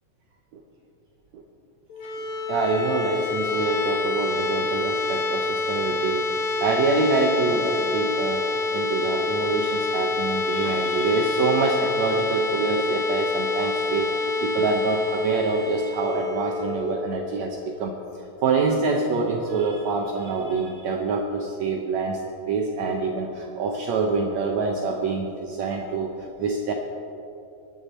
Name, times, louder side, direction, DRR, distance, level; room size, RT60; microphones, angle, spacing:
sound 1, 1.9-17.7, left 3 dB, 70° left, 1.9 m, -27 dB
voice 1, 2.5-6.3 6.6-8.4 8.7-18.0 18.4-22.2 22.5-26.1 26.4-26.7, right 4 dB, 75° right, 2 dB, 1.6 m, -25 dB
22.0 x 8.6 x 4.2 m, 2.8 s
omnidirectional pair, 4.1 m